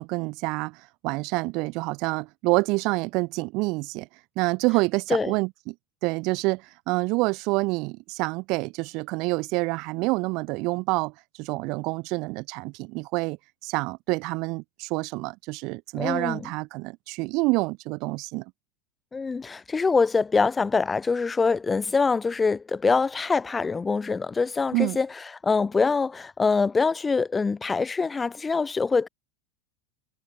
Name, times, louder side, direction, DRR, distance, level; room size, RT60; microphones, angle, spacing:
voice 1, 0.0-4.1 4.4-5.7 6.0-13.4 13.6-18.4 24.7-25.0, right 25 dB, 45° right, 1.0 m, -27 dB
voice 2, 16.0-16.5 19.1-25.1 25.4-29.1, left 4 dB, 10° left, 0.5 m, -24 dB
supercardioid pair, 160°, 0 cm